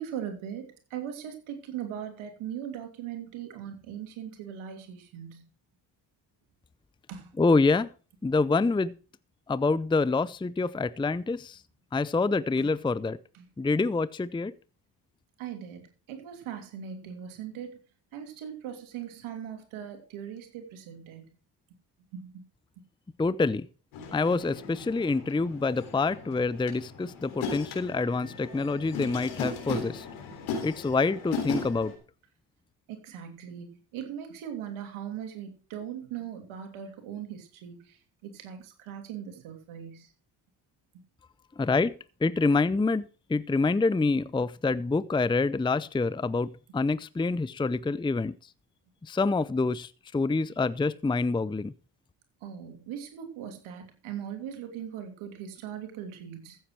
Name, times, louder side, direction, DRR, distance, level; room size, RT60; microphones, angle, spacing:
voice 1, 0.0-5.5 7.1-7.3 12.6-12.7 13.3-13.5 15.4-17.8 18.1-21.2 22.1-22.4 32.9-40.1 52.4-56.6, right 9 dB, 75° right, 3.0 m, -40 dB
voice 2, 7.4-7.9 8.2-8.9 9.5-11.6 11.9-13.2 13.6-14.5 23.2-23.7 24.1-30.1 30.6-31.9 41.6-41.9 42.2-48.3 49.0-51.7, left 3 dB, 10° left, 0.6 m, -26 dB
sound 1, 23.9-32.0, left 5 dB, 80° left, 3.7 m, -37 dB
15.0 x 7.9 x 4.7 m
hypercardioid pair, 50°, 48 cm